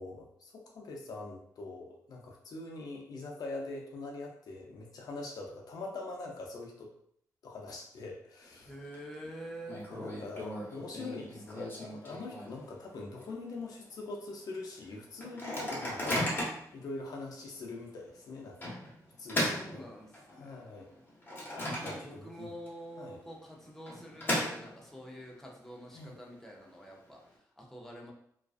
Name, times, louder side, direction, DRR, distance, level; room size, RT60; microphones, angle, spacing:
voice 1, 0.0-6.9 7.4-8.7 9.9-16.3 16.7-18.8 19.2-20.0 20.3-20.9 21.8-22.5 23.0-23.2 25.9-26.2, left 3 dB, 65° left, -1 dB, 0.5 m, -43 dB
Microwave oven, 8.4-9.0 9.2-9.3 9.7-12.8 13.2-13.3 13.5-13.9 14.4-14.5 15.2-16.7 17.3-17.5 18.6-20.4 20.9-22.4 22.7-22.8 23.6-25.0, left 1 dB, 30° left, 0.9 m, -36 dB
voice 2, 8.7-9.9 19.5-20.7 21.8-27.2 27.6-28.1, equal, 5° left, -1 dB, 0.6 m, -46 dB
2.3 x 2.3 x 2.4 m, 0.68 s
cardioid pair, 75°, 7 cm